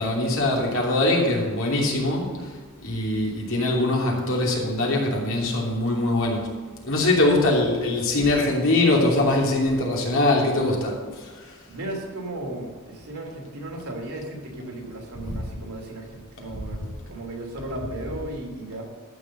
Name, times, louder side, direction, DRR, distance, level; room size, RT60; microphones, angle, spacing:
voice 1, 0.0-2.5 2.8-6.5 6.8-11.5 15.3-15.4, left 2 dB, 65° left, -2 dB, 3.0 m, -22 dB
voice 2, 11.7-18.8, right 1 dB, 85° right, 0 dB, 2.9 m, -35 dB
14.0 x 5.4 x 7.7 m, 1.5 s
head